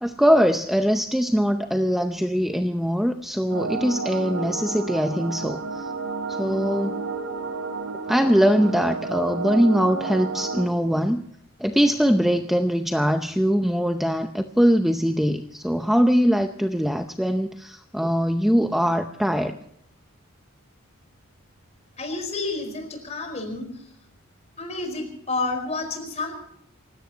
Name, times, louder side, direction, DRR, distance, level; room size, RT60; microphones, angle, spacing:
voice 1, 0.0-5.9 6.3-7.0 8.1-11.2 11.6-19.6, equal, ahead, 6 dB, 0.6 m, -22 dB
sound 1, 3.5-10.7, right 4 dB, 90° right, 3.4 m, -31 dB
voice 2, 22.0-23.7 24.6-26.4, left 3 dB, 30° left, 5 dB, 4.7 m, -30 dB
29.0 x 16.5 x 2.9 m, 0.72 s
head